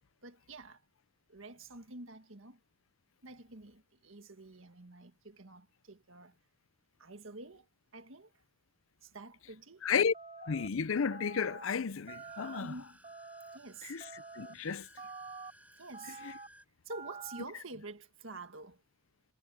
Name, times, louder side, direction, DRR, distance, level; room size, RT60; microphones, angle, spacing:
voice 1, 0.2-0.8 1.3-2.6 3.2-6.4 7.0-7.7 7.9-8.3 9.0-9.9 12.6-13.0 13.5-14.0 15.8-16.2 16.9-18.8, right 2 dB, 70° right, 1.8 m, -48 dB
voice 2, 9.8-10.1 10.4-12.6 13.9-14.0 14.4-14.9, left 6 dB, 75° left, 0.6 m, -32 dB
sound 1, 10.1-10.7 11.1-11.6 12.1-12.6 13.0-13.6 14.0-14.5 15.0-15.5 15.9-16.5 16.9-17.4, right 4 dB, 30° right, 3.8 m, -47 dB
sound 2, 11.9-16.6, right 1 dB, 5° right, 7.7 m, -60 dB
head